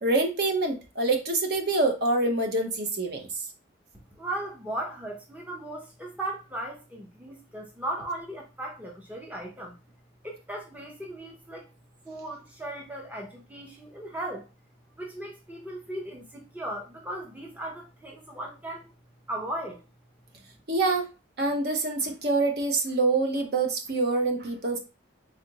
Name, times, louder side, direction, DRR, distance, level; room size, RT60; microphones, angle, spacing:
voice 1, 0.0-3.3 20.7-21.1 21.4-24.8, right 2 dB, 50° right, 3 dB, 0.8 m, -26 dB
voice 2, 4.1-9.7 10.2-11.7 12.0-14.4 15.0-18.9 19.3-19.8, right 1 dB, 10° right, -1 dB, 0.6 m, -37 dB
3.8 x 3.3 x 2.8 m, 0.29 s
head